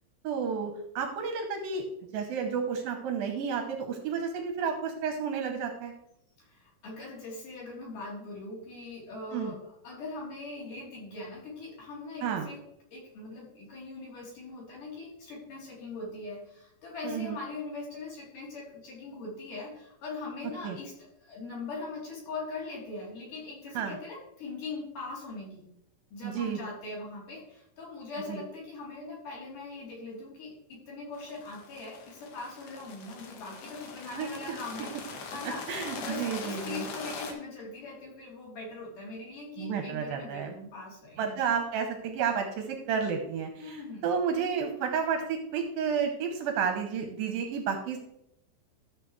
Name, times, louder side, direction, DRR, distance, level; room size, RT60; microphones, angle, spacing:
voice 1, 0.2-1.8 2.1-5.9 9.3-9.5 12.2-12.5 17.0-17.4 20.6-20.8 23.7-24.0 26.2-26.6 28.3-28.4 34.1-34.6 35.4-36.9 39.6-40.6 41.2-48.0, right 6 dB, 75° right, 4 dB, 2.2 m, -31 dB
voice 2, 6.4-9.6 9.8-12.6 12.9-20.9 21.2-25.6 26.1-34.9 35.3-35.6 36.0-41.4 43.6-44.1, left 3 dB, 50° left, -4 dB, 4.6 m, -41 dB
sound 1, 31.1-37.3, left 4 dB, 70° left, 2.0 m, -42 dB
13.0 x 7.5 x 3.2 m, 0.79 s
omnidirectional pair, 5.1 m